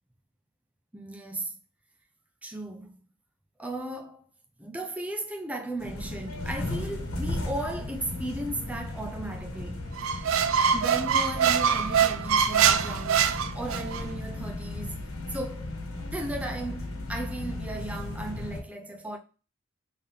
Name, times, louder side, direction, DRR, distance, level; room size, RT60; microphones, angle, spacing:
voice 1, 0.9-1.5 2.4-3.0 3.6-4.2 4.6-10.1 10.7-15.0 15.3-15.8 16.1-19.2, right 1 dB, 5° right, 0.5 m, -36 dB
sound 1, 5.8-18.6, left 2 dB, 85° left, 1.2 m, -36 dB
Squeak, 10.0-14.0, right 7 dB, 70° right, 0.4 m, -24 dB
3.7 x 3.6 x 2.8 m
head